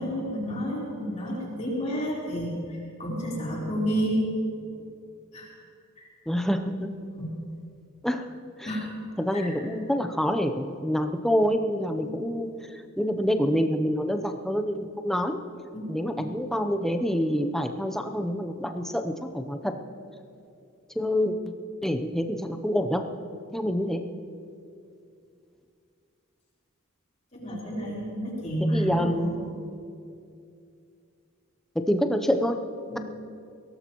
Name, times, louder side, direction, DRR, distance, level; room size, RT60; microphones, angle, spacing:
voice 1, 0.0-2.5 3.0-4.2 5.3-5.5 6.0-6.1 7.1-7.3 8.7-8.8 9.3-9.5 12.0-12.1 15.7-16.4 27.3-29.4 32.9-33.0, equal, 35° left, -6 dB, 4.0 m, -30 dB
voice 2, 6.3-6.9 8.0-8.2 8.6-8.7 9.2-12.5 13.0-15.4 15.9-19.7 21.0-21.3 21.8-23.0 23.5-24.0 28.6-29.3 31.9-32.6, equal, ahead, 5 dB, 0.7 m, -26 dB
22.5 x 17.0 x 3.0 m, 2.5 s
head